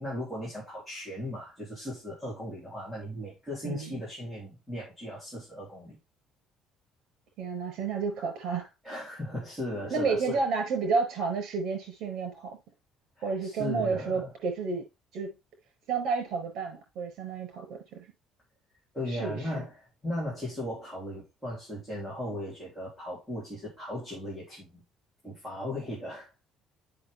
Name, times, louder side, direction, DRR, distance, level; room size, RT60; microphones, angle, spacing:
voice 1, 0.0-6.0 8.8-10.4 13.2-14.3 18.9-24.8 25.2-26.3, left 1 dB, 5° left, 3.8 m, -37 dB
voice 2, 3.6-4.0 7.4-8.6 9.9-12.6 13.2-14.8 15.1-15.3 15.9-18.1 19.1-19.6, right 5 dB, 60° right, 5.4 m, -31 dB
7.7 x 6.3 x 3.5 m
cardioid pair, 160°, 0 cm